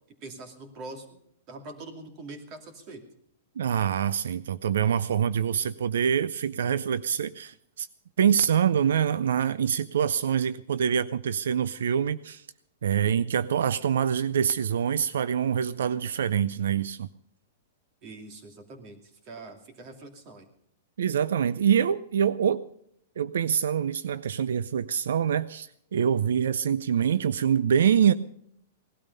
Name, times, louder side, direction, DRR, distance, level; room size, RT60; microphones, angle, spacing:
voice 1, 0.2-1.2 1.5-3.0 18.0-20.5, right 2 dB, 35° right, 5 dB, 2.6 m, -43 dB
voice 2, 3.6-7.9 8.2-12.5 12.8-17.1 21.0-22.6 23.2-28.1, right 8 dB, 85° right, 17 dB, 0.5 m, -25 dB
18.0 x 12.5 x 5.4 m, 0.71 s
hypercardioid pair, 155°, 0 cm